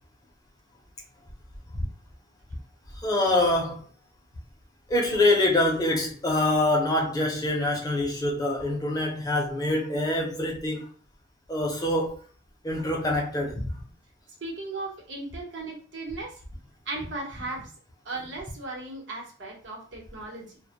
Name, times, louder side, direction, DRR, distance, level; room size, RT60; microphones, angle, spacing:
voice 1, 3.0-3.8 4.9-10.9 11.5-12.2 12.6-13.6, left 1 dB, 20° left, 0.5 m, -25 dB
voice 2, 14.4-16.4 16.9-17.7 18.0-20.6, right 2 dB, 70° right, 0.9 m, -36 dB
2.1 x 2.0 x 2.8 m
head